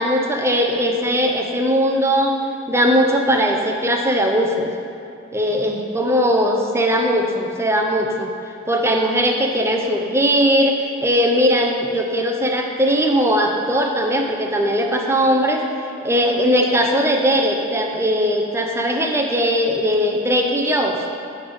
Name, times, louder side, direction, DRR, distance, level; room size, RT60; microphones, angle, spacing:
voice 1, 0.0-2.3 2.7-4.7 5.3-8.3 8.7-15.6 16.0-21.0, equal, 15° right, 1 dB, 0.8 m, -19 dB
10.5 x 3.7 x 7.1 m, 2.6 s
head